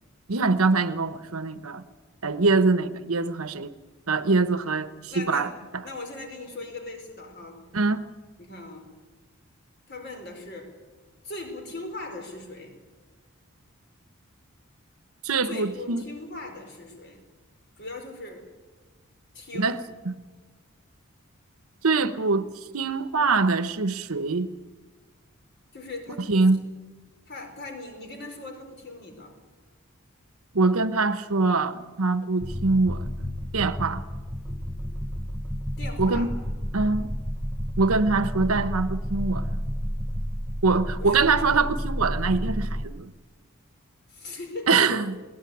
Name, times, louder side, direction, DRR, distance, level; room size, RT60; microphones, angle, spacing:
voice 1, 0.3-1.8 2.2-3.7 4.1-5.8 7.7-8.1 15.2-16.0 19.5-19.8 20.0-20.1 21.8-22.5 22.7-24.5 26.2-26.7 30.5-33.2 33.5-34.0 36.0-36.3 36.7-37.1 37.8-39.6 40.6-43.1 44.7-45.1, right 3 dB, 75° right, 1.1 m, -24 dB
voice 2, 5.1-7.6 8.4-8.9 9.9-10.7 11.2-12.8 15.4-17.2 17.8-18.5 19.3-19.8 25.7-26.3 27.3-29.4 35.8-36.4 41.0-41.1 44.1-45.0, left 2 dB, 50° left, 4.7 m, -39 dB
sound 1, 32.4-42.9, equal, ahead, 0.7 m, -31 dB
21.0 x 17.5 x 9.3 m
head